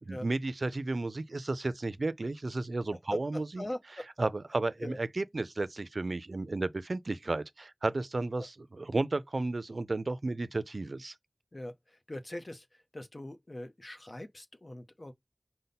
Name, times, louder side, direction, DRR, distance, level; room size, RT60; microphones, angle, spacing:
voice 1, 0.0-3.6 4.2-11.1, right 2 dB, 90° right, 0.4 m, -33 dB
voice 2, 2.9-4.3 4.8-5.0 8.4-8.5 11.5-15.1, left 1 dB, 50° left, 0.7 m, -42 dB
5.2 x 2.1 x 4.0 m
wide cardioid pair, 45°, 0 cm